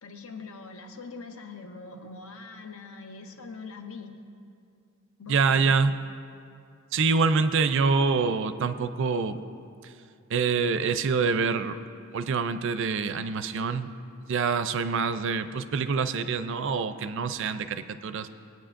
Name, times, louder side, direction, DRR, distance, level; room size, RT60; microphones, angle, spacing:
voice 1, 0.0-4.3 5.2-5.8, left 4 dB, 75° left, 5 dB, 0.9 m, -43 dB
voice 2, 5.3-5.9 6.9-9.4 9.8-9.9 10.3-11.8 12.1-13.9 14.3-18.3, right 5 dB, 60° right, 11 dB, 0.4 m, -26 dB
18.5 x 9.2 x 2.5 m, 2.4 s
head